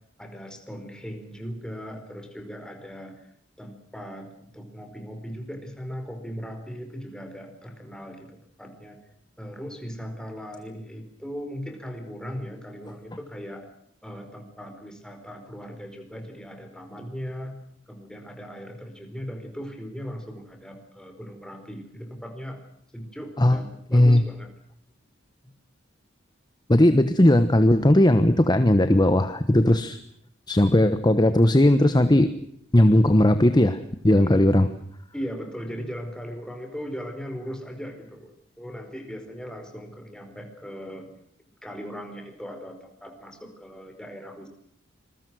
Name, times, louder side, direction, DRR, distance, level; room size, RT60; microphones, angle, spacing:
voice 1, 0.2-3.3 3.6-9.0 9.4-13.7 14.0-17.5 17.9-22.6 22.9-24.5 34.0-34.5 35.1-41.1 41.6-44.5, equal, 5° left, 5 dB, 4.8 m, -38 dB
voice 2, 23.9-24.2 26.7-30.0 30.5-32.3 32.7-33.8 34.0-34.7, left 1 dB, 20° left, 10 dB, 1.2 m, -18 dB
27.0 x 21.5 x 6.3 m, 0.67 s
head